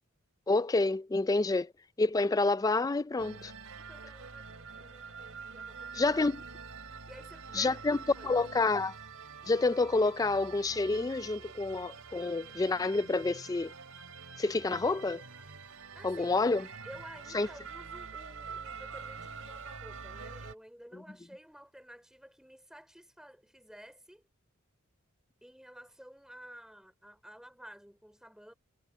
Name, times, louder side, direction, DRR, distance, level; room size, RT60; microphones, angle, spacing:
voice 1, 0.5-1.7 2.0-3.5 5.9-6.4 7.5-8.0 8.2-8.9 9.5-13.7 14.4-15.2 16.0-16.6 17.3-17.5, left 3 dB, 15° left, 0.3 m, -28 dB
sound 1, 3.2-20.5, right 5 dB, 80° right, 3.1 m, -46 dB
voice 2, 3.8-6.2 7.1-7.9 8.2-8.4 15.9-16.3 16.6-24.2 25.4-28.5, equal, 5° right, 3.0 m, -53 dB
head